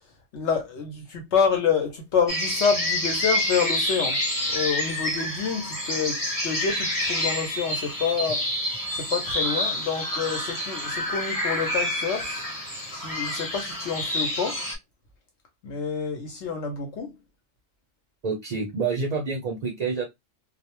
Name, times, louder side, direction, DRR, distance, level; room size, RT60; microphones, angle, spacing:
voice 1, 0.3-4.2 4.5-8.5 8.9-12.4 12.9-14.6 15.6-17.1, left 6 dB, 75° left, 0.9 m, -27 dB
sound 1, 2.3-14.7, left 1 dB, 20° left, 0.9 m, -28 dB
voice 2, 18.2-20.0, right 4 dB, 50° right, 0.5 m, -28 dB
2.2 x 2.0 x 2.9 m
omnidirectional pair, 1.2 m